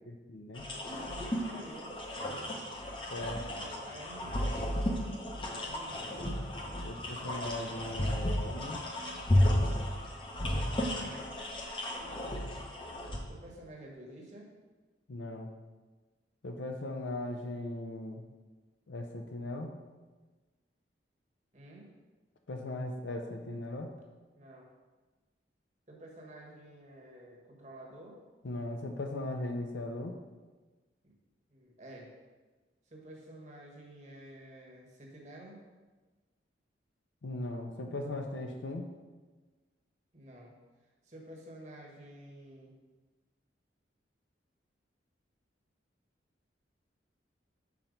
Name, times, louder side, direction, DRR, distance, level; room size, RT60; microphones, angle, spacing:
voice 1, 0.1-0.6 3.1-3.4 6.8-8.8 15.1-15.5 16.4-18.2 18.9-19.7 22.5-23.9 28.4-30.2 37.2-38.9, left 2 dB, 80° left, 4 dB, 0.6 m, -38 dB
sound 1, 0.6-13.2, left 1 dB, 25° left, 0.7 m, -33 dB
voice 2, 0.9-2.0 3.2-4.5 5.6-6.2 7.1-7.6 11.0-11.3 13.3-14.5 21.5-21.9 24.4-24.7 25.9-28.2 31.0-31.1 31.5-32.1 32.9-35.6 40.1-40.5 41.0-42.7, right 1 dB, 40° right, -1 dB, 1.2 m, -50 dB
6.0 x 4.3 x 5.2 m, 1.3 s
head